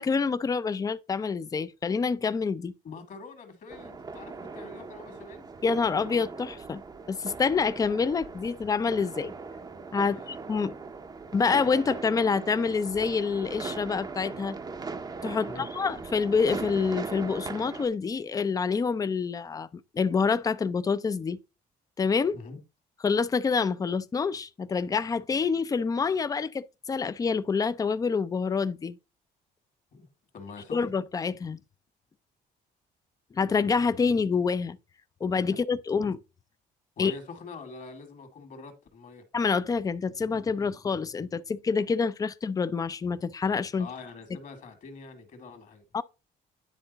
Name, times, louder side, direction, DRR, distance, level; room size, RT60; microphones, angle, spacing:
voice 1, 0.0-2.7 5.6-6.8 7.1-9.3 9.9-10.7 11.3-14.6 15.2-19.7 19.9-21.4 22.0-22.4 23.0-29.0 30.7-31.6 33.3-34.8 35.2-36.2 37.0-37.1 39.3-43.9 45.9-46.0, left 5 dB, 20° left, 0.5 m, -27 dB
voice 2, 2.8-5.5 10.1-10.3 15.4-15.7 22.3-22.6 29.9-30.1 30.3-30.9 37.0-39.3 43.8-45.8, left 4 dB, 50° left, 1.9 m, -44 dB
sound 1, 3.7-17.9, right 4 dB, 25° right, 0.7 m, -39 dB
10.0 x 3.7 x 4.0 m
cardioid pair, 110°, 17 cm